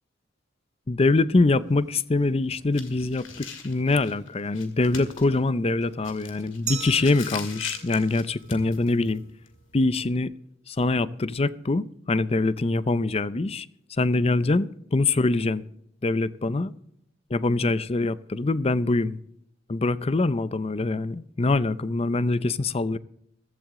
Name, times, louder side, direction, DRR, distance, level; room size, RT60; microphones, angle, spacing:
voice 1, 0.9-9.2 9.7-10.3 10.7-13.7 14.0-15.6 16.0-16.7 17.3-19.2 19.7-23.0, left 3 dB, 30° left, 0.5 m, -24 dB
sound 1, 1.5-5.5 5.8-6.7, right 1 dB, 20° right, 6.0 m, -57 dB
sound 2, 2.7-9.9, left 5 dB, 80° left, 2.4 m, -41 dB
Glass, 6.7-9.4, right 7 dB, 40° right, 2.0 m, -39 dB
15.0 x 13.5 x 3.7 m
head